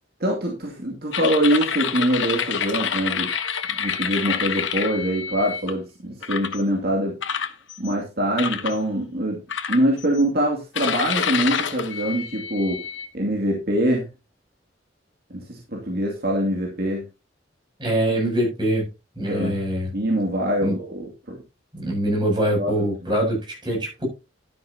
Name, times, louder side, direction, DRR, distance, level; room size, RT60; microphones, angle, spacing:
voice 1, 0.2-3.3 3.8-7.2 7.8-9.4 9.7-12.8 13.1-14.1 15.3-17.0 19.3-19.6 19.9-21.4 22.6-22.9, right 1 dB, 55° right, 0 dB, 2.4 m, -24 dB
sound 1, 1.1-5.7 6.2-6.6 7.2-7.9 8.4-8.8 9.5-10.2 10.7-13.1, left 7 dB, 90° left, 1.0 m, -27 dB
voice 2, 17.8-18.9 19.2-19.9 20.6-20.8 21.7-24.1, right 1 dB, 25° right, -1 dB, 7.4 m, -23 dB
12.0 x 10.0 x 2.8 m, 0.28 s
head